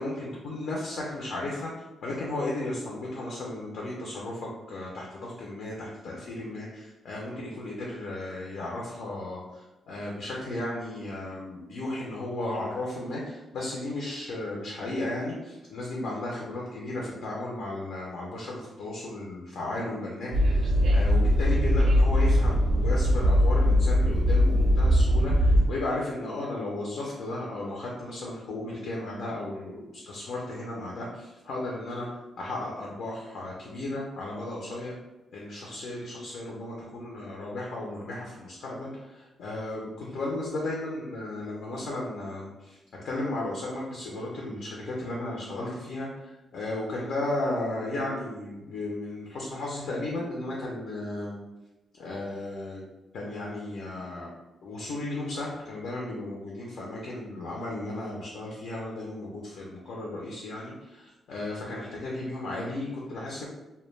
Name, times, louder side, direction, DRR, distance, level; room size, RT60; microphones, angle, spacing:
voice 1, 0.0-1.7 2.0-32.1 32.4-34.9 35.3-42.8 43.0-51.4 52.0-52.8 53.1-54.3 54.6-63.5, left 2 dB, 75° left, -3 dB, 0.5 m, -34 dB
Train, 20.3-25.7, equal, 60° right, 0.4 m, -21 dB
2.2 x 2.1 x 3.1 m, 1.0 s
wide cardioid pair, 135°, 0 cm